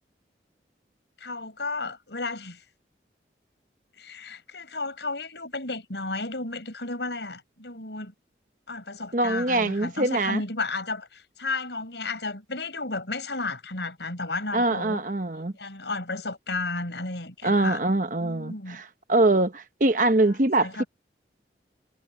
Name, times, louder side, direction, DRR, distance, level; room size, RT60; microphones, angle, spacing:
voice 1, 1.2-2.6 4.0-8.1 8.7-15.0 15.6-17.8 18.2-18.8 20.2-20.9, left 3 dB, 80° left, 5.4 m, -33 dB
voice 2, 9.1-10.4 14.5-15.5 17.4-18.8 19.1-20.8, right 2 dB, 45° right, 1.1 m, -23 dB
head